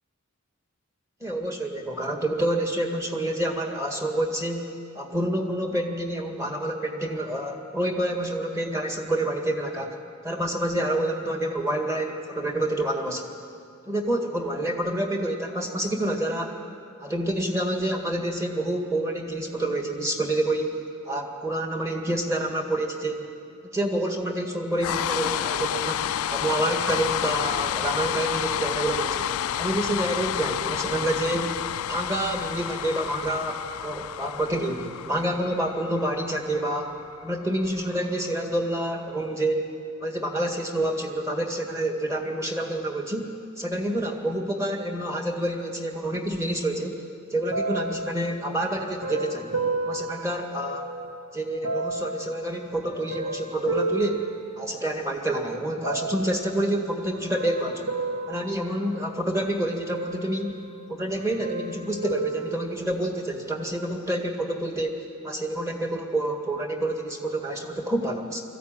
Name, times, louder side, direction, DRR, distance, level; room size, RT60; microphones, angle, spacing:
voice 1, 1.2-4.7 4.9-9.9 10.2-13.3 13.9-16.6 17.0-20.8 21.1-23.3 23.7-26.0 26.3-29.3 29.6-31.6 31.9-36.9 37.2-39.7 40.0-43.3 43.6-47.0 47.3-49.6 49.9-50.9 51.3-54.3 54.6-57.9 58.3-60.6 60.9-68.4, right 1 dB, 15° right, 2 dB, 1.9 m, -28 dB
sound 1, 24.8-38.9, left 10 dB, 85° left, 0.4 m, -30 dB
sound 2, 47.5-51.1 51.6-55.1 55.8-56.5 57.1-59.4 59.9-60.9 61.2-63.2 63.9-64.0, right 2 dB, 75° right, 1.9 m, -33 dB
20.0 x 14.5 x 9.0 m, 2.5 s
head